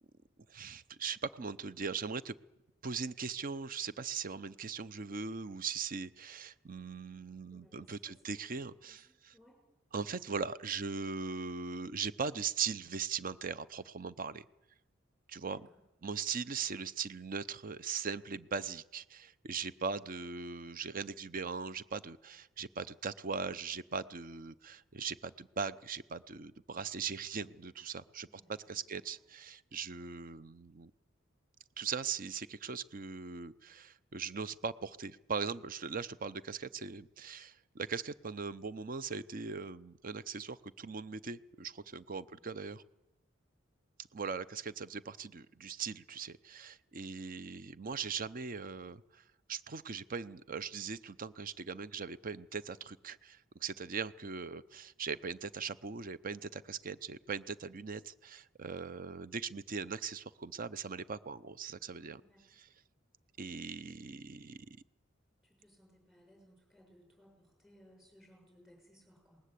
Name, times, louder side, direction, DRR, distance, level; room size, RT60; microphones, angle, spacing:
voice 1, 0.5-2.3 2.8-9.3 9.9-14.4 15.3-15.7 16.0-30.9 31.8-42.8 44.1-49.2 49.5-62.2 62.6-62.7 63.4-64.8, right 5 dB, 45° right, 15 dB, 0.7 m, -40 dB
voice 2, 7.5-8.5 8.7-9.6 15.4-15.8 28.3-28.6 28.9-29.2 42.3-42.6 62.1-62.4 65.4-69.4, equal, ahead, 1 dB, 7.4 m, -64 dB
19.5 x 19.5 x 8.3 m, 0.98 s
head